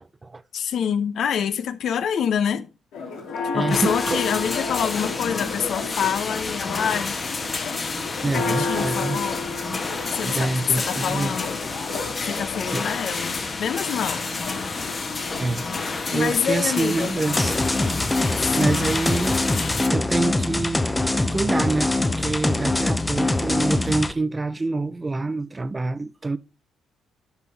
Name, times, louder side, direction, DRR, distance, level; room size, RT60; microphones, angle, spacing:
voice 1, 0.5-2.7 3.5-7.2 8.2-9.4 10.1-11.6 12.2-14.3 16.1-17.2 18.4-18.9, left 8 dB, 65° left, 0.8 m, -26 dB
Church bell, 2.9-17.9, left 4 dB, 90° left, 2.9 m, -33 dB
voice 2, 3.5-4.2 8.2-9.2 10.2-11.4 12.7-12.9 15.4-17.6 18.2-19.4 19.9-20.8 21.3-26.4, right 3 dB, 25° right, 0.5 m, -26 dB
sound 1, 3.7-19.9, left 4 dB, 35° left, 1.2 m, -30 dB
sound 2, 17.4-24.1, left 2 dB, 15° left, 0.7 m, -23 dB
9.9 x 5.6 x 4.3 m
cardioid pair, 90°, 0 cm